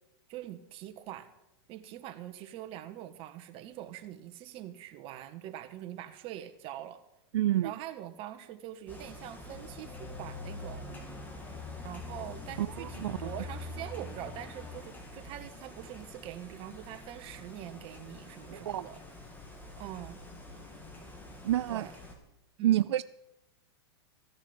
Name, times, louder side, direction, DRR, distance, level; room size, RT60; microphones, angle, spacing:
voice 1, 0.3-1.3 1.7-7.0 7.6-10.9 11.8-19.0 19.8-20.2 21.7-21.9 22.6-22.9, right 12 dB, 40° right, 8 dB, 1.5 m, -44 dB
voice 2, 7.3-7.7 12.6-13.3 18.5-18.9 21.4-21.9 22.6-23.0, right 13 dB, 85° right, 16 dB, 0.4 m, -28 dB
sound 1, 8.9-22.1, left 2 dB, 15° left, 2.7 m, -45 dB
15.0 x 8.8 x 7.3 m, 0.87 s
hypercardioid pair, 130°, 14 cm